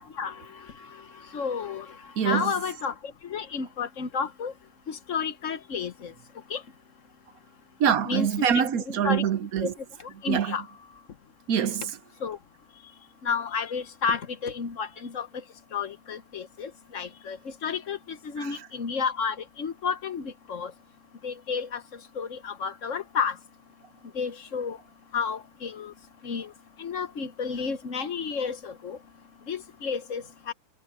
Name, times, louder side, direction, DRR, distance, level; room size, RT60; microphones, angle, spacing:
voice 1, 1.3-1.9 2.2-2.9 3.3-4.5 4.9-6.1 6.5-6.6 8.1-8.5 8.9-9.2 9.6-9.7 10.2-10.6 12.2-12.4 13.2-15.3 15.7-17.4 17.6-20.7 21.2-21.8 22.2-23.3 24.1-24.8 25.1-25.9 26.2-26.5 26.8-29.0 29.5-30.5, left 6 dB, 55° left, 1.3 m, -31 dB
voice 2, 2.2-2.5 7.8-9.7 10.3-10.5 11.5-11.8 18.4-18.5, right 8 dB, 70° right, 1.2 m, -24 dB
omnidirectional pair, 1.7 m